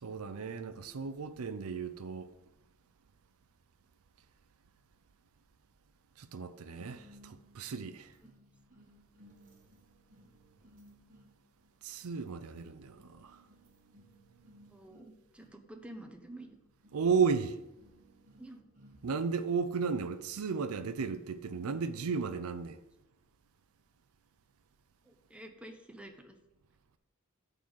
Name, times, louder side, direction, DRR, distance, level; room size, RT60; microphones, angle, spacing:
voice 1, 0.0-2.3 6.2-8.1 11.8-13.4 16.9-17.6 19.0-22.8, right 5 dB, 85° right, 0.5 m, -34 dB
sound 1, 6.8-22.2, right 1 dB, 35° right, 1.5 m, -62 dB
voice 2, 14.7-16.5 18.4-18.6 25.0-26.4, right 1 dB, 5° right, 0.7 m, -49 dB
8.4 x 4.0 x 6.2 m
head